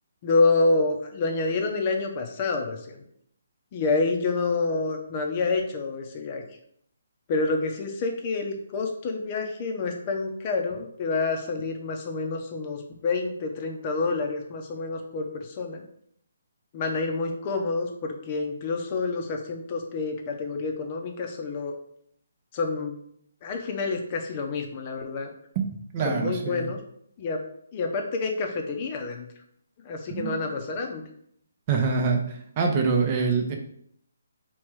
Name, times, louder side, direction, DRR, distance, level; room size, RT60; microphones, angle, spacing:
voice 1, 0.2-3.0 3.7-6.4 7.3-15.8 16.7-21.7 22.5-23.0 23.4-25.3 26.0-26.8 27.2-27.4 27.7-29.3 29.8-31.0, left 3 dB, 35° left, 3 dB, 0.7 m, -28 dB
voice 2, 25.9-26.7 30.1-30.4 31.7-33.5, right 5 dB, 35° right, 3 dB, 0.7 m, -25 dB
3.5 x 3.1 x 4.7 m, 0.68 s
figure-of-eight pair, 145°, 0 cm